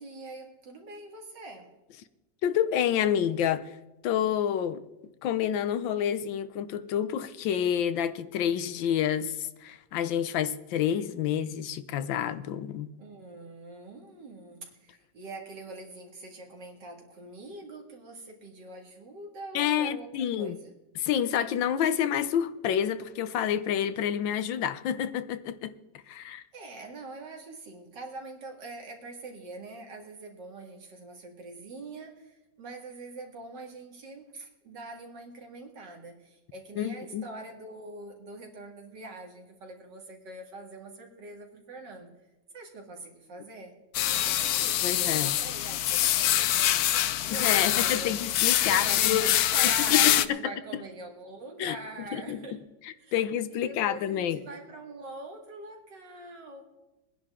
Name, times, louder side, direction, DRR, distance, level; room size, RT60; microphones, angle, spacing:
voice 1, 0.0-1.7 13.0-20.7 26.5-42.1 42.5-43.7 44.1-48.2 48.7-52.6 53.0-53.2 53.5-56.6, right 2 dB, 65° right, 2.7 m, -43 dB
voice 2, 2.4-3.7 4.0-4.8 5.2-12.9 19.5-20.6 20.9-25.7 26.1-26.4 36.8-37.3 44.8-45.3 47.3-49.3 49.9-50.4 51.6-52.6 52.8-54.4, left 9 dB, 90° left, 1.5 m, -28 dB
sound 1, 43.9-50.3, left 12 dB, 70° left, 0.9 m, -25 dB
21.0 x 10.5 x 3.7 m
omnidirectional pair, 2.0 m